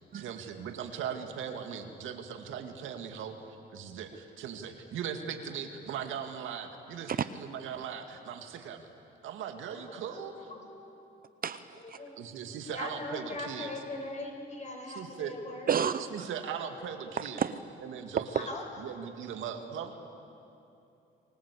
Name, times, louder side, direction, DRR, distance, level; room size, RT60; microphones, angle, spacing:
voice 1, 0.1-8.9 9.2-10.5 12.2-13.7 14.9-15.4 16.1-17.4 17.8-18.5 18.8-19.9, right 7 dB, 85° right, 5 dB, 2.2 m, -39 dB
voice 2, 9.9-10.2 10.5-10.8 11.7-12.2 12.7-15.7 18.3-18.6, left 2 dB, 35° left, 2 dB, 6.3 m, -40 dB
voice 3, 11.4-12.0 15.7-16.1 17.4-17.6, right 8 dB, 45° right, 12 dB, 0.8 m, -30 dB
29.5 x 21.0 x 8.4 m, 2.7 s
cardioid pair, 90°, 20 cm